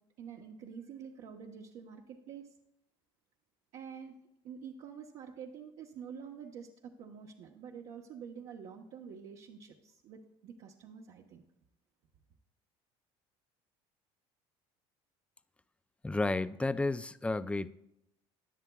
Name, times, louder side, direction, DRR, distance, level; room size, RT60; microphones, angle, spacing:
voice 1, 0.2-2.5 3.7-4.1 4.4-11.4, right 7 dB, 65° right, 1.0 m, -47 dB
voice 2, 16.0-17.7, left 2 dB, 10° left, 0.4 m, -32 dB
16.0 x 10.5 x 2.3 m
supercardioid pair, 90°, 12 cm